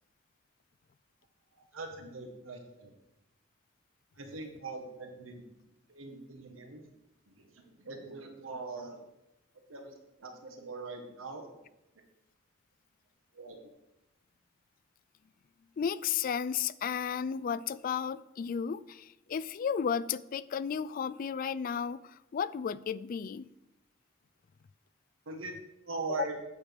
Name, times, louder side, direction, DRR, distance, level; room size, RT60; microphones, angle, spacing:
voice 1, 1.5-2.9 4.2-5.5 5.9-6.9 7.3-9.1 9.7-11.6 13.3-13.6 25.2-25.5 25.8-26.3, right 3 dB, 90° right, 4 dB, 1.4 m, -42 dB
voice 2, 15.8-23.5 26.1-26.2, left 7 dB, 45° left, 17 dB, 0.3 m, -33 dB
8.7 x 6.5 x 5.2 m, 0.93 s
head